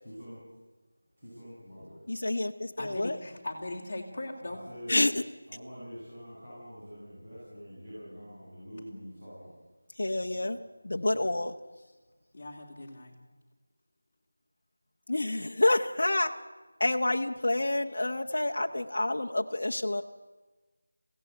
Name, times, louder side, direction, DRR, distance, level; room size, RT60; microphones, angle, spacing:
voice 1, 0.0-0.4 1.2-2.0 4.4-5.0 5.5-9.5 10.1-10.5 11.1-11.2, equal, 15° right, -14 dB, 7.9 m, -46 dB
voice 2, 2.1-3.2 4.9-5.2 10.0-10.6 10.8-11.5 15.1-16.3 16.8-20.0, left 2 dB, 50° left, 2 dB, 1.0 m, -28 dB
voice 3, 2.8-4.6 12.3-13.2, left 2 dB, 20° left, -3 dB, 3.3 m, -39 dB
21.0 x 17.0 x 8.2 m, 1.2 s
figure-of-eight pair, 180°, 0 cm